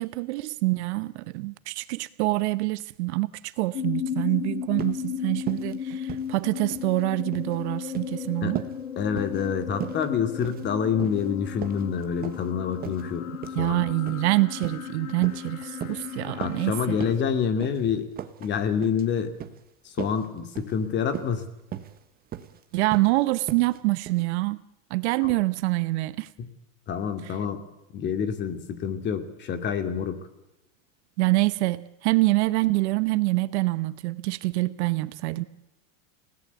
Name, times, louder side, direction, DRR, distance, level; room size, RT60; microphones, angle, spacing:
voice 1, 0.0-8.6 13.5-17.0 22.7-24.6 24.9-26.3 27.2-27.3 31.2-35.4, right 21 dB, 55° right, 15 dB, 1.1 m, -26 dB
sound 1, 3.7-17.1, left 8 dB, 85° left, 4.7 m, -35 dB
sound 2, 4.8-5.0 5.4-5.7 6.0-6.9 7.2-7.5 7.9-8.2 8.6-8.8 9.2-9.5 9.8-10.1 10.4-10.7 11.0-11.3 11.6-12.5 12.8-13.0 13.4-13.6 14.1-14.3 14.6-14.9 15.2-15.5 15.8-16.0 16.4-16.7 17.0-17.2 17.6-17.8 18.2-18.5 18.8-19.0 19.4-19.6 20.0-20.3 20.6-20.7 21.1-21.4 21.7-22.0 22.3-22.6 22.9-23.1 23.5-23.8 24.1-24.2, right 10 dB, 20° right, 1.5 m, -37 dB
voice 2, 9.0-13.2 13.6-13.7 16.4-18.1 18.4-19.3 20.0-21.5 25.2-25.3 26.4-26.5 26.9-27.6 27.9-30.2, left 7 dB, 25° left, 8 dB, 2.6 m, -27 dB
29.5 x 18.0 x 8.2 m, 0.92 s
supercardioid pair, 155°, 41 cm